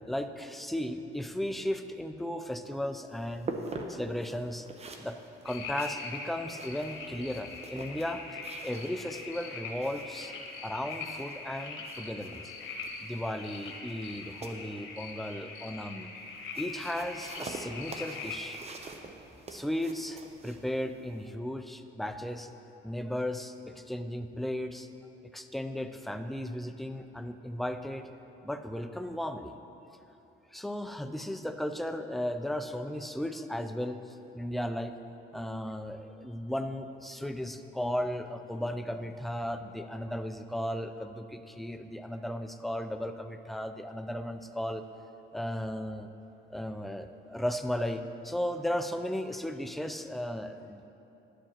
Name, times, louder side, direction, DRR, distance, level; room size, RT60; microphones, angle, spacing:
voice 1, 0.1-3.5 3.9-4.7 5.0-5.2 5.4-8.2 8.6-10.3 10.6-12.5 13.0-16.1 16.6-18.6 19.5-22.5 22.8-24.9 25.2-28.1 28.4-29.5 30.5-35.0 35.3-44.8 45.3-46.1 46.5-50.9, left 1 dB, ahead, 8 dB, 0.4 m, -35 dB
sound 1, 2.5-21.3, right 3 dB, 30° right, 0.7 m, -46 dB
sound 2, 5.5-18.4, left 4 dB, 85° left, 1.0 m, -42 dB
11.0 x 7.2 x 2.9 m, 2.8 s
cardioid pair, 90°, 20 cm